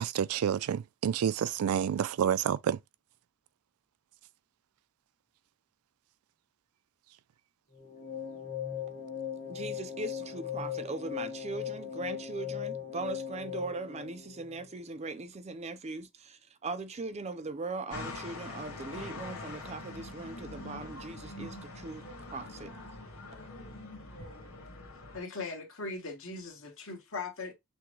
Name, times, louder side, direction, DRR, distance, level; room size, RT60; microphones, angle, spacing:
voice 1, 0.0-2.8, right 8 dB, 90° right, 0.3 m, -29 dB
sound 1, 7.7-14.9, left 9 dB, 30° left, 1.4 m, -39 dB
voice 2, 9.5-22.7, right 3 dB, 30° right, 0.5 m, -40 dB
sound 2, 17.9-25.2, left 2 dB, 90° left, 1.6 m, -44 dB
voice 3, 25.1-27.5, left 3 dB, 65° left, 1.4 m, -39 dB
5.9 x 2.1 x 3.1 m
head